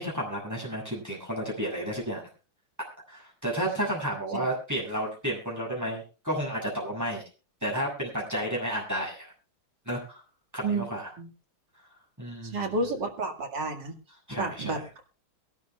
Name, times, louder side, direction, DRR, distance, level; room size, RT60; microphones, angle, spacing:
voice 1, 0.0-2.3 3.1-7.2 7.6-9.3 9.8-10.2 10.5-11.1 12.2-12.7 14.3-14.8, equal, 10° right, -3 dB, 6.4 m, -32 dB
voice 2, 12.5-13.9 14.4-14.8, right 3 dB, 55° right, 3 dB, 2.7 m, -30 dB
23.0 x 12.5 x 2.3 m, 0.34 s
omnidirectional pair, 2.3 m